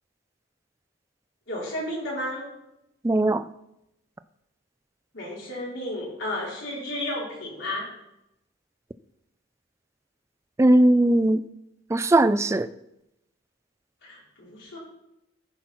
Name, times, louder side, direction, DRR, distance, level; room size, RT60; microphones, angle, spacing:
voice 1, 1.5-2.4 5.1-7.9 14.0-14.8, left 1 dB, 85° left, -5 dB, 4.4 m, -32 dB
voice 2, 3.0-3.4 10.6-11.4 11.9-12.7, right 1 dB, 15° right, 13 dB, 0.3 m, -19 dB
14.5 x 5.8 x 4.3 m, 0.85 s
head